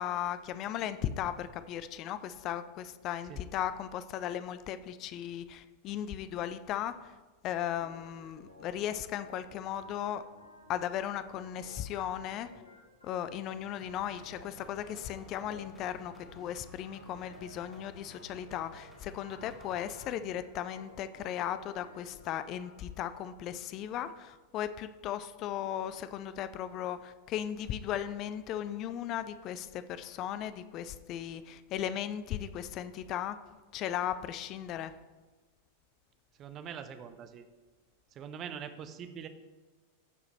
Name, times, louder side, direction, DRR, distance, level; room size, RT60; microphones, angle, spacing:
voice 1, 0.0-7.1 7.4-10.2 10.7-12.5 13.0-33.4 33.7-34.9, left 10 dB, 35° left, 13 dB, 0.4 m, -36 dB
Organ, 7.8-22.8, left 1 dB, 80° left, 1.6 m, -56 dB
sound 1, 13.8-20.1, left 1 dB, 5° left, 2.0 m, -55 dB
voice 2, 36.4-37.5 38.1-39.3, right 8 dB, 30° right, 9 dB, 0.6 m, -43 dB
13.5 x 4.8 x 3.3 m, 1.2 s
figure-of-eight pair, 90°, 0 cm